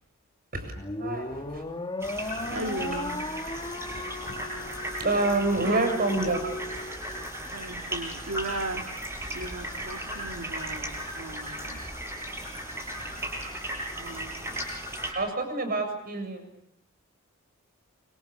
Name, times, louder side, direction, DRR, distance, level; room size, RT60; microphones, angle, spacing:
sound 1, 0.8-7.2, left 2 dB, 25° left, 1.6 m, -36 dB
voice 1, 1.0-1.6 2.3-2.7 3.9-4.3 5.0-6.4 15.1-16.5, right 2 dB, 45° right, 7 dB, 7.5 m, -28 dB
sound 2, 2.0-15.1, right 1 dB, 10° right, 7.6 m, -36 dB
voice 2, 2.5-3.2 5.6-5.9 7.5-8.8 9.3-11.8 13.9-14.8, right 2 dB, 65° right, 3 dB, 2.1 m, -36 dB
28.0 x 26.5 x 6.9 m, 0.78 s
head